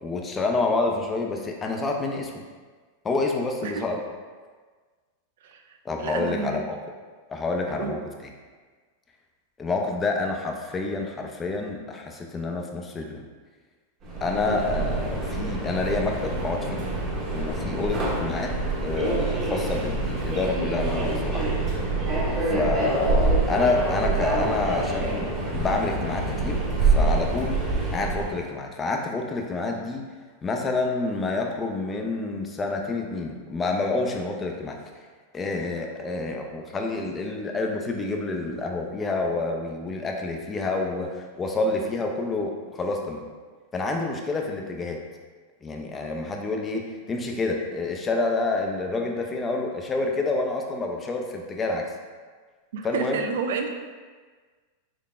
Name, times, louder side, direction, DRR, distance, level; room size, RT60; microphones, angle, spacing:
voice 1, 0.0-2.4 3.0-4.0 5.8-6.8 7.3-8.3 9.6-13.3 14.2-16.9 17.3-18.5 18.8-21.5 22.4-27.6 27.9-30.1 30.4-34.8 35.3-43.2 43.7-45.0 45.6-51.9 52.8-53.3, left 3 dB, 20° left, 2 dB, 0.4 m, -28 dB
voice 2, 6.0-6.6 7.7-8.0 14.4-14.6 22.5-22.6 52.7-53.7, right 5 dB, 75° right, 5 dB, 0.4 m, -30 dB
Subway metro underground, 14.0-28.4, right 2 dB, 35° right, 0.8 m, -26 dB
3.8 x 3.3 x 2.4 m, 1.5 s
supercardioid pair, 135°, 0 cm